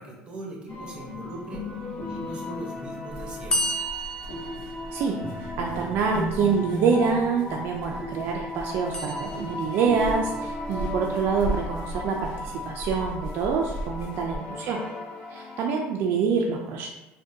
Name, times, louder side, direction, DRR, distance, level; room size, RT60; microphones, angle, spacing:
voice 1, 0.0-1.6 2.1-3.8 14.3-14.8, right 1 dB, 20° right, -1 dB, 0.8 m, -41 dB
sound 1, 0.7-15.7, left 1 dB, 55° left, 0.7 m, -36 dB
sound 2, 3.1-14.4, equal, 90° left, 0.6 m, -39 dB
sound 3, 3.5-5.5 8.9-10.0, equal, 20° left, 0.4 m, -32 dB
voice 2, 4.9-14.8 15.3-16.9, right 5 dB, 60° right, 1 dB, 0.3 m, -26 dB
3.5 x 2.2 x 2.6 m, 1.0 s
cardioid pair, 130°, 4 cm